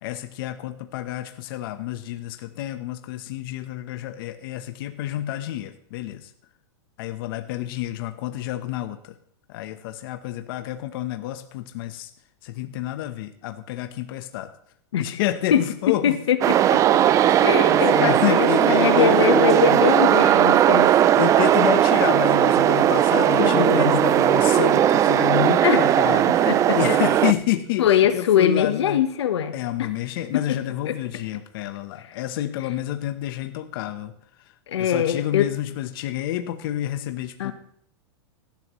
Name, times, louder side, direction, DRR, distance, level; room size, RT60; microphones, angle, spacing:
voice 1, 0.0-6.3 7.0-9.2 9.5-12.1 12.4-14.5 15.0-16.2 17.2-19.9 21.2-29.0 29.5-34.1 34.4-34.5 34.8-37.5, left 13 dB, 55° left, 8 dB, 1.0 m, -29 dB
voice 2, 16.0-16.8 17.4-20.9 23.4-24.0 25.6-25.8 26.3-26.8 27.8-29.5 29.8-29.9 30.3-30.6 30.8-30.9 34.7-35.5 37.4-37.5, left 9 dB, 85° left, 10 dB, 1.2 m, -22 dB
sound 1, 16.4-27.3, right 11 dB, 25° right, 0.4 m, -18 dB
17.5 x 12.0 x 3.1 m, 0.66 s
supercardioid pair, 140°, 14 cm